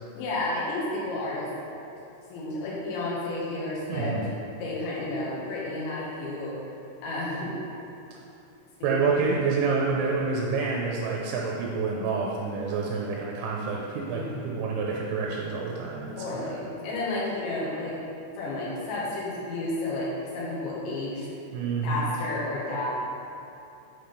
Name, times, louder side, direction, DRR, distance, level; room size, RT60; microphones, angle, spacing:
voice 1, 0.2-1.5 2.3-4.2 4.6-6.6 7.0-7.6 8.8-9.1 14.1-14.6 16.1-18.0 18.4-21.3 21.8-22.9, left 2 dB, 70° left, -7 dB, 3.7 m, -31 dB
voice 2, 3.9-4.3 8.8-16.5 21.5-22.0, right 4 dB, 80° right, -2 dB, 3.1 m, -28 dB
8.5 x 5.0 x 5.2 m, 2.8 s
omnidirectional pair, 5.9 m